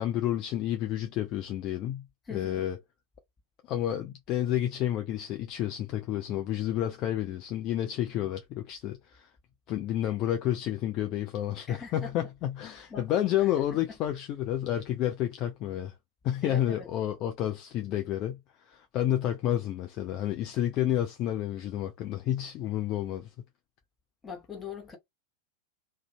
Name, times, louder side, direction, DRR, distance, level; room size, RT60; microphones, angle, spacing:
voice 1, 0.0-2.8 3.7-9.3 9.7-15.9 16.2-23.3, left 12 dB, 35° left, 0.4 m, -30 dB
voice 2, 2.3-2.6 11.7-12.1 12.9-13.1 13.4-13.8 16.4-16.9 24.2-25.0, left 5 dB, 15° left, 0.9 m, -42 dB
2.5 x 2.2 x 2.4 m
figure-of-eight pair, 90°, 0 cm